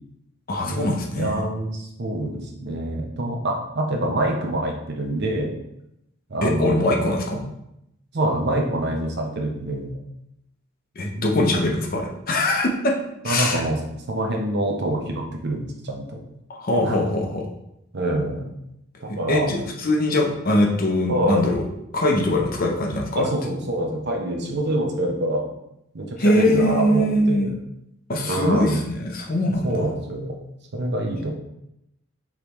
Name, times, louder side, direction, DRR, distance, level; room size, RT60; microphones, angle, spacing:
voice 1, 0.5-1.4 6.4-7.4 11.0-13.0 13.2-13.6 16.5-17.5 19.1-21.6 21.9-23.3 26.2-27.5 28.1-29.9, left 1 dB, 40° left, 1 dB, 0.7 m, -22 dB
voice 2, 1.2-5.5 6.3-6.9 8.1-10.0 11.2-11.3 13.2-13.8 14.1-16.2 16.8-17.0 17.9-18.5 19.0-19.5 21.1-21.5 23.2-25.5 25.9-27.5 28.3-28.8 29.6-30.3 30.7-31.3, right 1 dB, 50° right, 1 dB, 0.7 m, -25 dB
5.0 x 3.2 x 3.1 m, 0.82 s
head